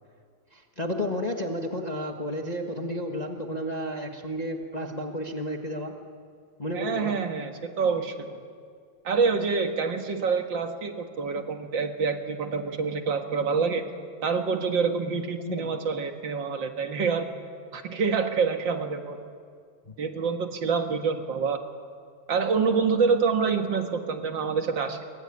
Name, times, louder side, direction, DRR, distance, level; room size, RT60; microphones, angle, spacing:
voice 1, 0.5-5.9 6.6-7.2 15.4-15.7 19.9-20.0, equal, 35° left, 3 dB, 0.6 m, -32 dB
voice 2, 6.7-8.4 9.0-13.8 14.2-17.3 17.7-19.2 20.0-21.6 22.3-25.0, right 5 dB, 45° right, 5 dB, 2.0 m, -26 dB
23.0 x 22.0 x 9.8 m, 2.1 s
omnidirectional pair, 3.3 m